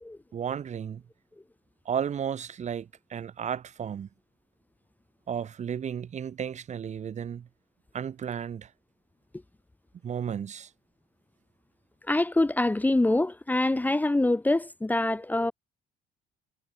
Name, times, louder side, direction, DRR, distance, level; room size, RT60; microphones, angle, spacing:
voice 1, 0.3-1.0 1.9-4.1 5.3-7.5 7.9-8.7 10.0-10.7, right 8 dB, 45° right, 2.2 m, -33 dB
voice 2, 12.1-15.5, left 2 dB, 10° left, 1.4 m, -25 dB
cardioid pair, 110°, 17 cm